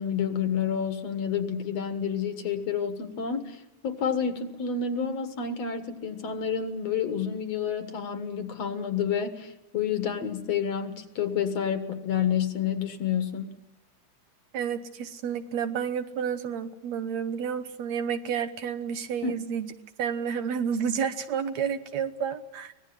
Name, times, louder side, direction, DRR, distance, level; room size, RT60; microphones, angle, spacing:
voice 1, 0.0-13.5 19.2-19.3, left 7 dB, 60° left, 8 dB, 2.5 m, -29 dB
voice 2, 14.5-19.7 20.0-22.7, right 7 dB, 70° right, 9 dB, 2.2 m, -30 dB
25.0 x 18.5 x 9.0 m, 0.90 s
omnidirectional pair, 3.5 m